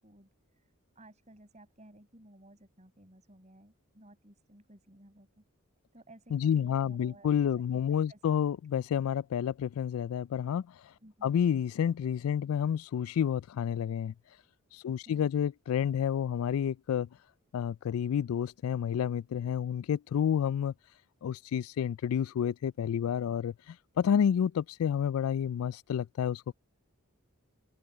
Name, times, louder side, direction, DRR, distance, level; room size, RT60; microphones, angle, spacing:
voice 1, 0.0-5.4 5.9-7.3 7.6-8.2 11.0-11.4 14.9-15.3, right 1 dB, 30° right, 7.2 m, -57 dB
voice 2, 6.3-10.6 11.2-14.1 14.8-17.1 17.5-20.7 21.2-23.5 24.0-26.5, left 8 dB, 75° left, 0.3 m, -29 dB
head